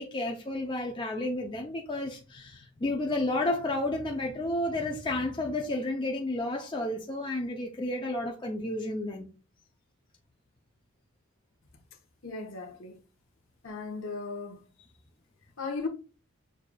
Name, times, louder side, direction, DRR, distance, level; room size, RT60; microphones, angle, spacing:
voice 1, 0.0-9.3, left 1 dB, 20° left, 0.5 m, -31 dB
voice 2, 12.2-13.0 13.6-14.7 15.6-15.9, left 4 dB, 65° left, 0.9 m, -36 dB
6.6 x 2.4 x 2.2 m
head